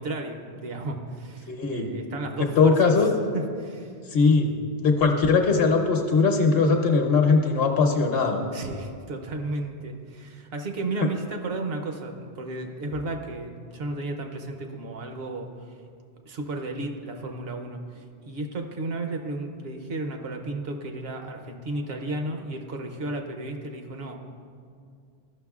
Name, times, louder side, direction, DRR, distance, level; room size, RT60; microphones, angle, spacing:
voice 1, 0.0-3.0 3.3-3.9 8.5-15.5 16.3-24.2, right 2 dB, 70° right, 5 dB, 0.9 m, -33 dB
voice 2, 1.5-1.9 2.4-3.1 4.1-4.5 4.8-8.4, left 4 dB, 65° left, 3 dB, 1.0 m, -20 dB
13.0 x 5.9 x 2.4 m, 2.2 s
omnidirectional pair, 1.1 m